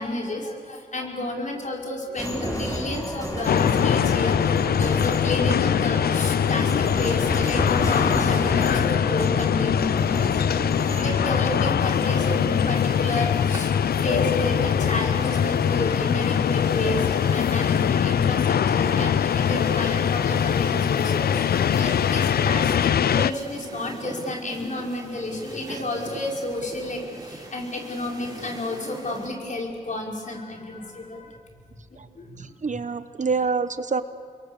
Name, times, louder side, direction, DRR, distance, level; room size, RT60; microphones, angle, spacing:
voice 1, 0.0-31.4 32.2-32.8, left 2 dB, 50° left, 0 dB, 5.4 m, -31 dB
sound 1, 2.2-11.7, equal, 20° left, 7.2 m, -31 dB
sound 2, 3.5-23.3, left 8 dB, 75° left, 0.5 m, -22 dB
sound 3, 11.8-29.3, right 2 dB, 25° right, 5.3 m, -42 dB
voice 2, 32.4-34.0, right 4 dB, 50° right, 12 dB, 1.2 m, -27 dB
28.5 x 22.5 x 7.1 m, 2.4 s
cardioid pair, 55°, 16 cm